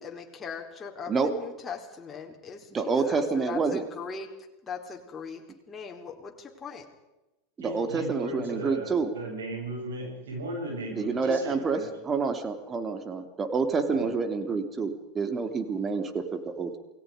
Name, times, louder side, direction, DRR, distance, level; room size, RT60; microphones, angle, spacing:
voice 1, 0.0-4.3 4.6-6.9, left 6 dB, 20° left, 1 dB, 4.2 m, -40 dB
voice 2, 2.7-3.8 7.6-9.1 10.9-11.8 12.0-16.8, right 4 dB, 25° right, 8 dB, 3.1 m, -28 dB
voice 3, 7.6-11.9 13.9-14.1, right 1 dB, 70° right, 0 dB, 7.7 m, -36 dB
28.5 x 20.0 x 5.2 m, 0.99 s
figure-of-eight pair, 80°, 0 cm